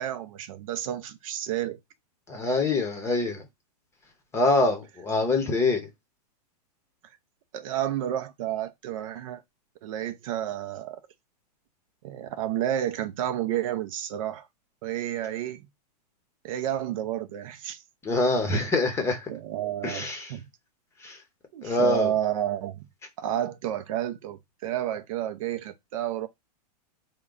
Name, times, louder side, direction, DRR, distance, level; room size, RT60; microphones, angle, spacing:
voice 1, 0.0-1.8 7.5-9.4 9.8-11.0 12.0-14.5 14.8-15.6 16.4-17.8 19.3-20.4 21.5-22.9 23.2-26.3, right 11 dB, 55° right, 0.5 m, -31 dB
voice 2, 2.3-3.5 4.3-5.9 18.0-19.3 19.8-20.3 21.0-21.2 21.6-22.1, left 2 dB, 15° left, 0.8 m, -25 dB
3.7 x 2.2 x 3.7 m
hypercardioid pair, 140°, 21 cm